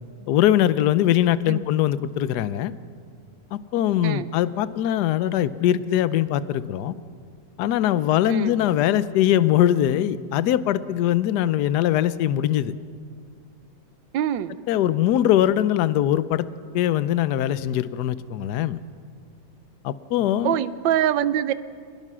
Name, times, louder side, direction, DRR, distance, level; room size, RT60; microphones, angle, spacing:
voice 1, 0.3-2.7 3.5-6.9 7.6-12.7 14.7-16.5 16.7-18.8 19.8-20.5, left 12 dB, 65° left, 15 dB, 1.1 m, -21 dB
voice 2, 14.1-14.5 20.4-21.5, right 11 dB, 75° right, 14 dB, 1.4 m, -24 dB
25.5 x 20.0 x 6.2 m, 2.2 s
omnidirectional pair, 2.1 m